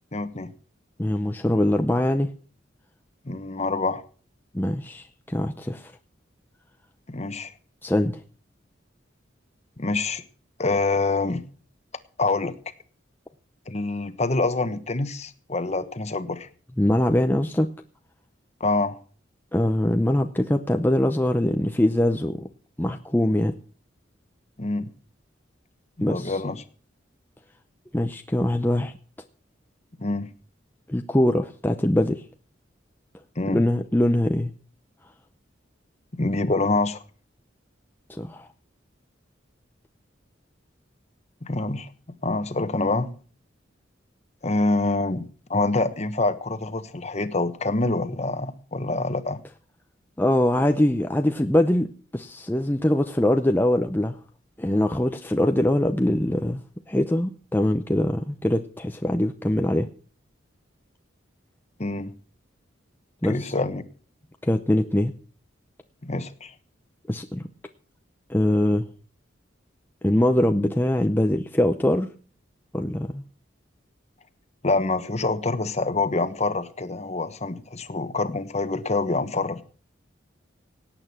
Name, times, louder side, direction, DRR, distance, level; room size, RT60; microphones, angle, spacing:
voice 1, 0.1-0.5 3.2-4.0 7.1-7.5 9.8-10.2 10.6-11.4 12.2-12.6 13.7-16.5 18.6-19.0 24.6-24.9 26.0-26.6 30.0-30.3 33.3-33.6 36.1-37.0 41.4-41.9 42.2-43.1 44.4-49.4 61.8-62.1 63.2-63.8 66.0-66.5 74.6-79.6, left 3 dB, 35° left, 1.2 m, -26 dB
voice 2, 1.0-2.3 4.5-5.9 7.8-8.2 16.8-17.7 19.5-22.5 22.8-23.5 26.0-26.4 27.9-28.9 30.9-32.2 33.5-34.5 38.1-38.5 50.2-51.9 52.1-54.2 54.6-59.9 63.2-63.5 64.4-65.1 67.1-67.4 68.3-68.9 70.0-72.1 72.7-73.2, left 1 dB, 10° left, 0.6 m, -23 dB
17.5 x 8.8 x 5.9 m
head